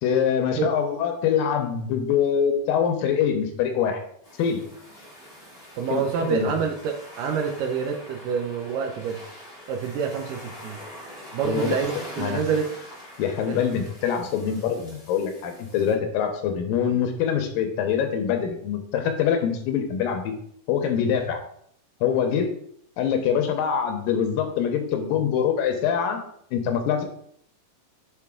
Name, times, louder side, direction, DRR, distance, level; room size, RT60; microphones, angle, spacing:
voice 1, 0.0-4.0 4.4-4.6 5.9-6.5 11.4-11.7 12.2-12.4 13.2-20.3 20.7-21.4 22.0-22.5 23.0-26.3 26.5-27.0, left 8 dB, 80° left, 5 dB, 2.3 m, -24 dB
sound 1, 4.2-15.9, left 1 dB, 30° left, 0.7 m, -43 dB
voice 2, 5.8-9.2 9.7-10.8 11.3-12.7 13.5-13.6, right 6 dB, 80° right, 3 dB, 2.0 m, -27 dB
6.8 x 4.4 x 3.6 m, 0.67 s
omnidirectional pair, 4.3 m